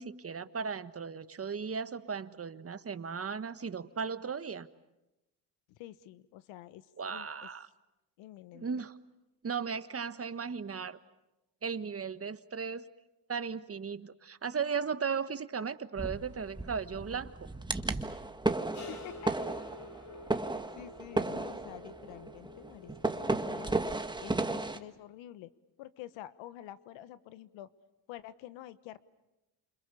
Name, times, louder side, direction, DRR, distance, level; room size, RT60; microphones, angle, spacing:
voice 1, 0.0-4.7 7.0-7.7 8.5-9.0 9.4-11.0 11.6-12.9 13.3-17.5, right 6 dB, 30° right, 12 dB, 1.5 m, -36 dB
voice 2, 5.7-7.5 8.2-8.7 18.9-19.3 20.3-23.8 24.2-25.5 25.8-27.7 28.1-29.0, left 13 dB, 80° left, 15 dB, 1.3 m, -48 dB
sound 1, 16.0-24.8, right 2 dB, 10° right, 1.7 m, -34 dB
sound 2, 18.7-24.5, left 3 dB, 40° left, 5.4 m, -51 dB
29.5 x 27.5 x 7.0 m, 0.97 s
supercardioid pair, 80°, 45 cm